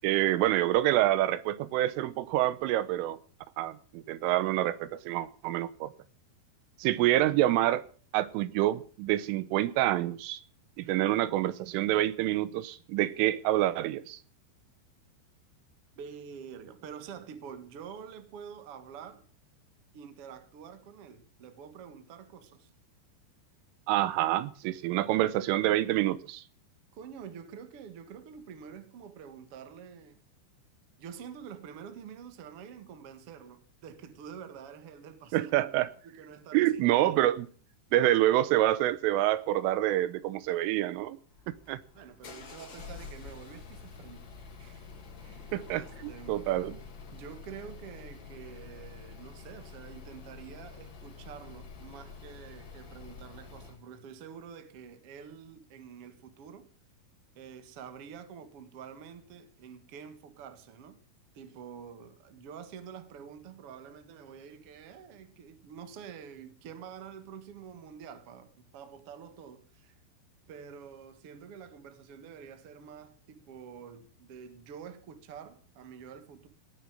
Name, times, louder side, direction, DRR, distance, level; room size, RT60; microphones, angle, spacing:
voice 1, 0.0-3.2 3.6-5.9 6.8-7.8 8.1-10.4 10.8-14.2 23.9-26.4 35.3-35.9 36.5-37.5 37.9-41.2 41.5-41.8 45.5-46.8, right 14 dB, 85° right, 3.5 m, -27 dB
voice 2, 15.9-19.2 19.9-22.7 24.9-25.3 26.9-30.2 31.0-35.5 36.0-37.1 41.9-44.9 45.2-46.5 47.1-56.7 57.3-61.0 61.3-70.0 70.5-76.5, right 7 dB, 65° right, 1.4 m, -47 dB
sound 1, 41.3-53.8, left 5 dB, 70° left, 1.1 m, -48 dB
18.5 x 6.9 x 8.8 m
omnidirectional pair, 5.6 m